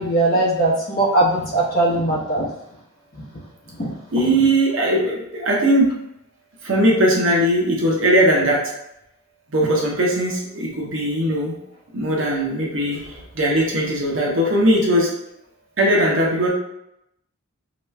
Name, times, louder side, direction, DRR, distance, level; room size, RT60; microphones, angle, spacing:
voice 1, 0.0-2.5 3.8-3.9, right 2 dB, 40° left, -4 dB, 0.9 m, -19 dB
voice 2, 4.1-5.9 6.6-8.7 9.5-11.6 11.9-15.1 15.8-16.5, right 1 dB, 60° right, -3 dB, 0.8 m, -19 dB
2.9 x 2.3 x 3.2 m, 0.81 s
head